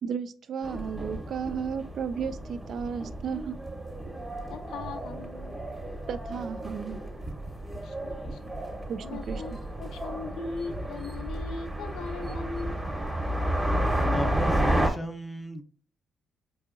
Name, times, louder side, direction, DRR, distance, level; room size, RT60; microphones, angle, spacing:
voice 1, 0.0-3.6 6.1-7.0 8.9-9.4, right 6 dB, 60° right, 0.3 m, -34 dB
sound 1, 0.6-14.9, right 1 dB, 15° right, 0.8 m, -32 dB
voice 2, 4.5-5.6 7.7-8.5 9.0-12.9, left 4 dB, 80° left, 0.4 m, -39 dB
voice 3, 14.0-15.6, left 1 dB, 20° left, 0.5 m, -35 dB
4.6 x 2.7 x 2.4 m
cardioid pair, 90°, 0 cm